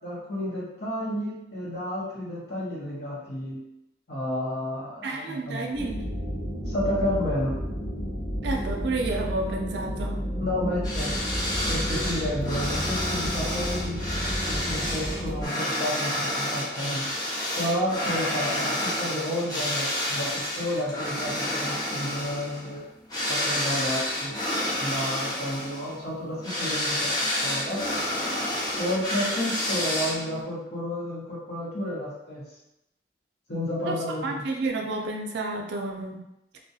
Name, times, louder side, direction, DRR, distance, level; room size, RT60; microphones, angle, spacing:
voice 1, 0.0-3.6 4.1-5.7 6.7-7.5 10.4-11.2 11.7-14.0 14.4-17.1 17.5-22.8 23.3-24.4 24.8-27.8 28.8-32.4 33.5-34.4, left 1 dB, 65° left, -6 dB, 0.9 m, -31 dB
voice 2, 5.0-6.1 8.4-10.2 33.8-36.2, right 2 dB, 75° right, 2 dB, 0.4 m, -31 dB
sound 1, 5.7-15.5, equal, 5° left, 1.0 m, -31 dB
sound 2, 10.8-30.4, left 1 dB, 20° left, 0.5 m, -29 dB
2.3 x 2.1 x 2.6 m, 0.89 s
head